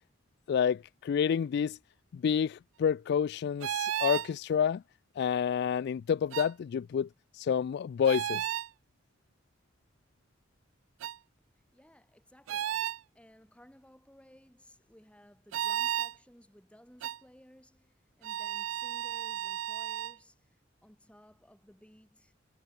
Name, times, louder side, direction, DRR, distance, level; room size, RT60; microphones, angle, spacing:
voice 1, 0.5-1.8 2.1-4.8 5.2-7.1 7.3-8.4, left 7 dB, 60° left, 0.3 m, -29 dB
sound 1, 3.6-4.3 6.3-6.5 8.0-8.7 11.0-11.2 12.5-13.0 15.5-16.1 17.0-17.2 18.2-20.2, right 11 dB, 80° right, 0.3 m, -33 dB
voice 2, 11.5-22.3, equal, 5° left, 7.1 m, -59 dB
head